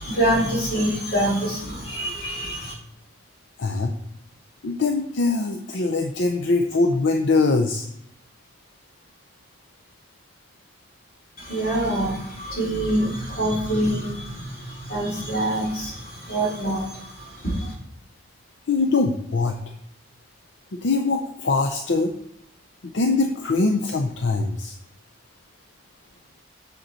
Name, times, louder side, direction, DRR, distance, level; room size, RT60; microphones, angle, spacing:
voice 1, 0.0-2.7 11.4-17.7, right 1 dB, 50° left, -6 dB, 3.5 m, -25 dB
voice 2, 3.6-3.9 4.6-7.9 18.7-19.6 20.7-22.1 22.8-24.7, left 3 dB, 75° left, 4 dB, 0.6 m, -22 dB
7.9 x 6.6 x 4.2 m, 0.73 s
head